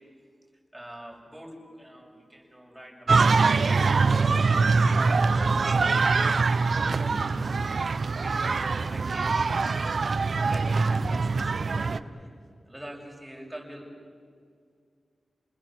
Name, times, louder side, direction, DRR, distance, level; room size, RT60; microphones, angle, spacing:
voice 1, 0.7-3.4 3.6-4.8 5.2-7.8 8.1-10.0 10.3-12.3 12.7-13.9, right 1 dB, 5° right, 0 dB, 7.3 m, -44 dB
sound 1, 3.1-12.0, right 4 dB, 60° right, 0.8 m, -23 dB
29.5 x 20.5 x 7.7 m, 2.2 s
cardioid pair, 55°, 0 cm